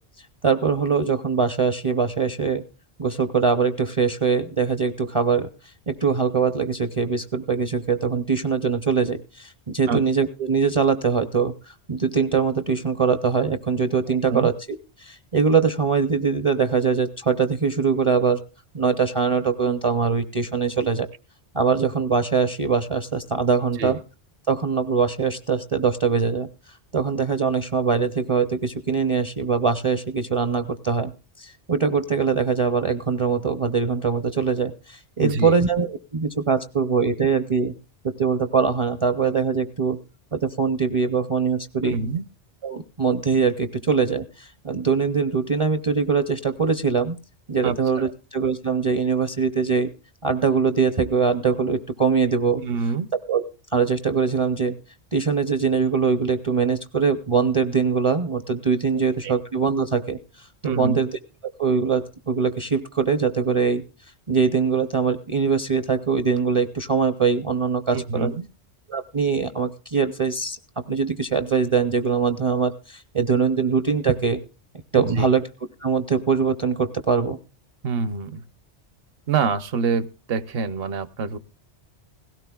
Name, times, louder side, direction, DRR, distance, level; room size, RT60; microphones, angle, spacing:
voice 1, 0.4-2.6 3.0-5.5 5.9-14.5 15.0-18.4 18.7-21.1 21.5-24.0 24.5-26.5 26.9-31.1 31.4-37.7 38.0-40.0 40.3-42.0 42.6-47.2 47.5-49.9 50.2-52.6 53.3-53.4 53.7-54.8 55.1-61.2 61.6-63.8 64.3-68.3 68.9-70.6 70.9-74.4 74.9-75.4 75.8-77.4, right 5 dB, 35° right, 9 dB, 0.6 m, -22 dB
voice 2, 35.2-35.6 41.8-42.2 47.6-48.1 52.6-53.1 59.2-59.3 60.6-61.0 67.9-68.5 74.9-75.3 77.8-78.4 79.3-81.4, right 5 dB, 65° right, 14 dB, 0.9 m, -26 dB
17.5 x 16.5 x 2.3 m, 0.32 s
omnidirectional pair, 1.1 m